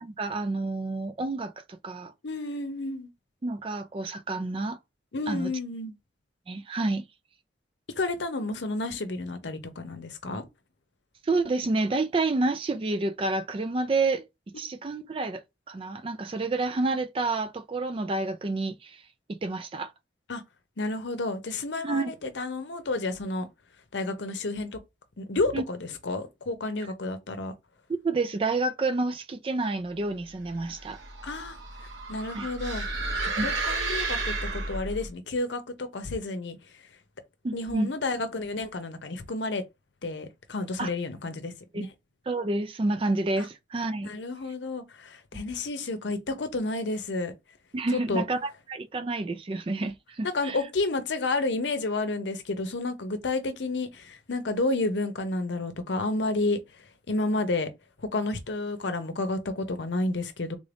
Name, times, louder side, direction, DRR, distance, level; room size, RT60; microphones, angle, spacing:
voice 1, 0.0-2.1 3.4-4.8 5.3-5.5 6.5-7.0 11.2-14.3 14.6-19.0 19.3-19.9 21.8-22.1 25.5-25.6 28.0-31.0 32.3-32.5 33.4-33.5 37.4-37.9 40.8-40.9 41.7-41.8 42.3-44.1 47.7-50.6, right 3 dB, 30° right, 0.3 m, -29 dB
voice 2, 2.2-3.1 5.1-5.9 8.0-10.4 20.3-20.4 20.8-23.5 23.9-24.8 25.2-27.5 31.2-32.9 33.4-36.8 37.5-39.6 40.0-41.9 43.4-43.5 44.0-47.3 47.9-48.2 50.2-57.7 58.0-60.6, left 2 dB, 75° left, 0.7 m, -31 dB
sound 1, 30.6-35.1, right 3 dB, 75° right, 1.9 m, -32 dB
3.7 x 2.5 x 3.3 m
head